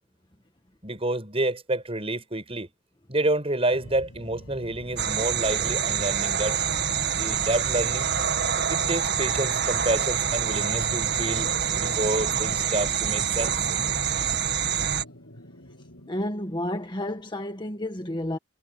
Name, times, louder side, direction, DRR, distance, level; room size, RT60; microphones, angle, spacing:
voice 1, 0.8-2.7 3.1-6.6 7.1-8.1 8.7-13.5, right 2 dB, 30° right, 7.8 m, -28 dB
sound 1, 3.7-16.2, left 1 dB, 85° left, 7.3 m, -45 dB
sound 2, 5.0-15.0, right 8 dB, 60° right, 1.9 m, -26 dB
voice 2, 16.1-18.4, left 1 dB, 25° left, 1.8 m, -31 dB
head